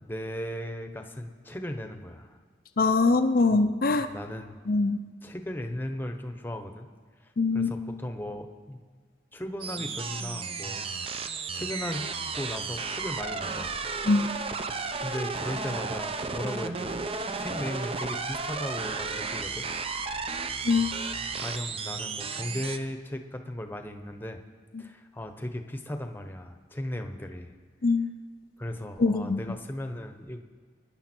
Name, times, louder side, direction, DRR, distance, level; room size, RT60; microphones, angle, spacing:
voice 1, 0.0-2.4 3.5-3.7 4.0-4.6 5.2-6.9 7.2-8.8 9.3-10.8 11.2-12.1 12.4-13.8 15.0-16.9 17.3-19.7 21.4-24.4 24.8-27.5 28.6-30.4, left 1 dB, 10° left, 6 dB, 1.0 m, -36 dB
voice 2, 2.8-4.1 4.7-5.0 7.4-7.7 14.0-14.3 20.6-20.9 27.8-28.1 29.0-29.4, left 3 dB, 50° left, 7 dB, 0.6 m, -23 dB
sound 1, 9.6-22.8, right 4 dB, 30° right, 0.7 m, -33 dB
25.5 x 10.5 x 4.5 m, 1.5 s
head